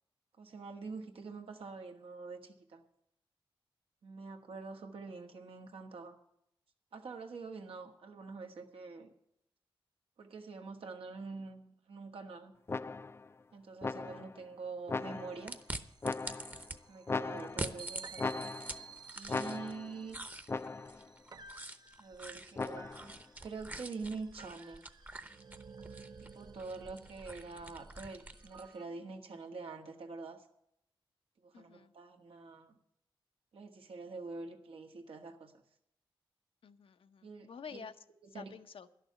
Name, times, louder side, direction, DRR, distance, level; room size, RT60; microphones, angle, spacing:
voice 1, 0.4-2.8 4.0-6.1 6.9-9.1 10.2-12.5 13.5-15.5 16.9-18.5 19.1-20.2 22.0-23.1 23.4-24.9 26.2-30.4 31.4-32.7 33.5-35.5 37.2-37.9 38.2-38.5, right 4 dB, 85° right, 3 dB, 1.5 m, -45 dB
sound 1, 12.7-13.3 13.8-14.4 14.9-15.5 16.0-16.7 17.1-17.8 18.2-18.9 19.3-20.0 20.5-21.1 22.6-23.2, left 3 dB, 25° left, 0.4 m, -38 dB
voice 2, 13.9-14.2 31.5-31.9 36.6-37.9 38.3-38.9, left 6 dB, 80° left, 10 dB, 0.8 m, -50 dB
sound 2, 15.0-28.8, right 5 dB, 45° right, 0.6 m, -55 dB
sound 3, 15.5-16.8 17.4-19.8 20.1-28.7, right 2 dB, 20° right, 0.8 m, -46 dB
11.0 x 6.7 x 9.4 m, 0.77 s
wide cardioid pair, 85°, 9 cm